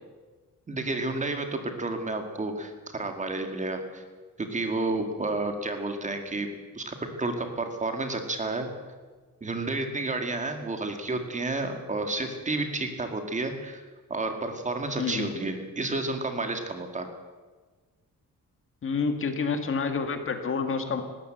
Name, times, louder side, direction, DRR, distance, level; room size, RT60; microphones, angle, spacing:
voice 1, 0.7-4.0 4.4-6.5 6.8-8.7 9.4-13.8 14.1-17.1, right 2 dB, 20° right, 6 dB, 2.0 m, -31 dB
voice 2, 15.0-15.4 18.8-21.0, left 5 dB, 40° left, 7 dB, 1.8 m, -28 dB
20.0 x 17.0 x 7.9 m, 1.4 s
wide cardioid pair, 180°, 33 cm